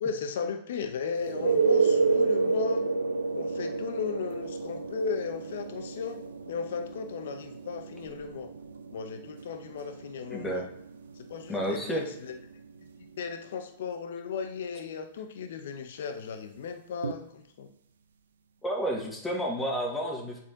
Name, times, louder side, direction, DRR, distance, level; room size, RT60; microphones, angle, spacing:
voice 1, 0.0-2.8 3.3-8.5 8.9-10.7 11.2-12.4 13.2-17.7, left 6 dB, 70° left, 8 dB, 0.7 m, -36 dB
sound 1, 1.2-12.8 17.0-17.1, right 4 dB, 85° right, 0.5 m, -30 dB
voice 2, 10.3-10.6 11.5-12.0 18.6-20.4, equal, 10° left, -1 dB, 1.7 m, -30 dB
7.4 x 4.1 x 3.8 m, 0.72 s
hypercardioid pair, 120°, 0 cm